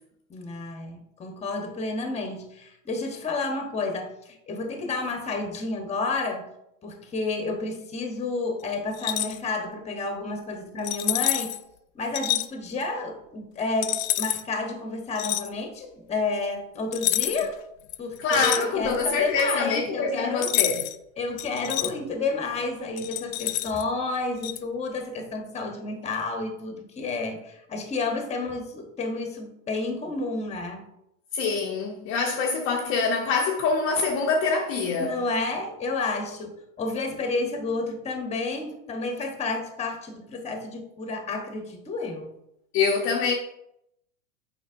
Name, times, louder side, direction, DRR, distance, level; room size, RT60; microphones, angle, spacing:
voice 1, 0.3-6.5 6.8-11.5 11.9-17.6 18.0-20.6 21.2-30.9 35.0-42.3, left 3 dB, 15° left, 1.0 m, -30 dB
sound 1, 8.9-9.4 10.8-11.6 12.1-12.5 13.8-14.4 15.1-15.5 16.9-17.5 17.9-19.1 20.4-21.0 21.4-21.9 23.0-23.8 24.4-24.6, left 15 dB, 75° left, 0.6 m, -27 dB
voice 2, 18.2-20.8 31.3-35.2 42.7-43.4, left 4 dB, 30° left, 0.7 m, -25 dB
7.2 x 5.3 x 2.5 m
supercardioid pair, 135°, 41 cm